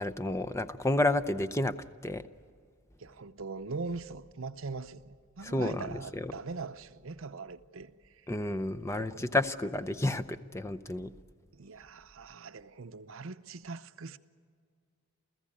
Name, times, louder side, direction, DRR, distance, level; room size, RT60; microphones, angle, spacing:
voice 1, 0.0-1.8 2.0-2.2 5.4-6.3 8.3-11.1, left 1 dB, 15° left, 0.6 m, -31 dB
voice 2, 3.0-8.2 8.9-9.4 11.5-14.2, right 4 dB, 70° right, 0.8 m, -41 dB
28.5 x 15.5 x 8.7 m
head